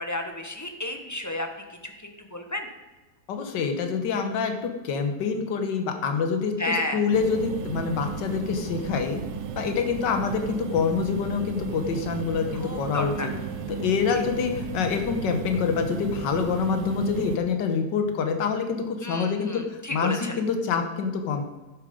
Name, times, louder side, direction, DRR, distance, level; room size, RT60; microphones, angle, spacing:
voice 1, 0.0-1.5 2.3-2.7 6.6-7.0 12.5-13.3 14.1-14.2 19.0-20.4, left 1 dB, 15° left, 5 dB, 0.7 m, -31 dB
voice 2, 3.3-9.2 9.6-13.3 13.7-21.4, left 5 dB, 80° left, 6 dB, 1.7 m, -26 dB
sound 1, 7.1-17.4, right 7 dB, 75° right, 1.3 m, -34 dB
11.0 x 6.9 x 5.1 m, 1.2 s
omnidirectional pair, 1.9 m